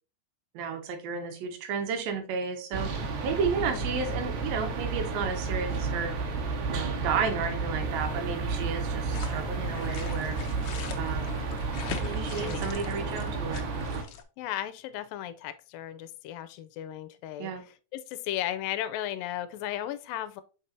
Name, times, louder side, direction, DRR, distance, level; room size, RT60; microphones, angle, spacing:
voice 1, 0.5-2.9 3.2-6.1 6.7-10.4 11.0-11.3 12.0-13.7 17.4-17.6, right 6 dB, 85° right, 3.0 m, -32 dB
sound 1, 2.7-14.0, right 3 dB, 65° right, 2.5 m, -32 dB
voice 2, 3.6-3.9 12.3-12.6 13.0-13.2 14.4-20.4, left 12 dB, 85° left, 2.3 m, -36 dB
sound 2, 9.1-14.2, left 8 dB, 70° left, 1.9 m, -42 dB
6.6 x 5.3 x 2.7 m
omnidirectional pair, 4.0 m